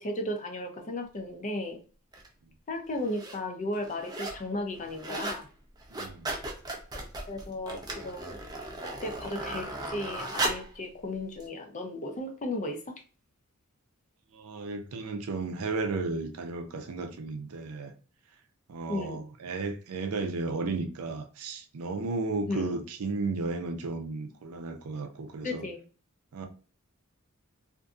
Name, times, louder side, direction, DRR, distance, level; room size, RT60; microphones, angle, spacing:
voice 1, 0.0-1.8 2.7-5.5 7.3-8.4 9.0-12.9 18.9-19.2 22.5-22.8 25.4-25.8, left 1 dB, 35° left, 0.5 m, -35 dB
sound 1, 2.1-2.3 3.0-3.4 3.7-4.4 4.7-5.4 5.8-10.7 11.4-11.5, right 2 dB, 20° right, 0.4 m, -36 dB
voice 2, 5.9-6.3 14.3-17.9 18.7-25.6 26.3-26.5, right 3 dB, 80° right, 0.5 m, -34 dB
2.6 x 2.5 x 2.3 m
head